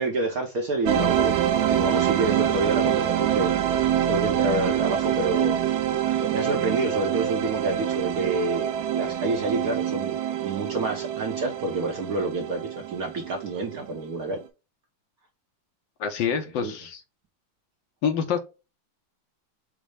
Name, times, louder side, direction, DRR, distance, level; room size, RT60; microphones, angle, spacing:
voice 1, 0.0-5.6 6.2-14.4 16.6-16.7, right 2 dB, 60° right, 1.0 m, -28 dB
sound 1, 0.9-13.8, right 10 dB, 85° right, 0.8 m, -25 dB
voice 2, 16.0-17.0 18.0-18.4, left 7 dB, 70° left, 1.2 m, -26 dB
5.3 x 2.0 x 4.6 m
omnidirectional pair, 2.3 m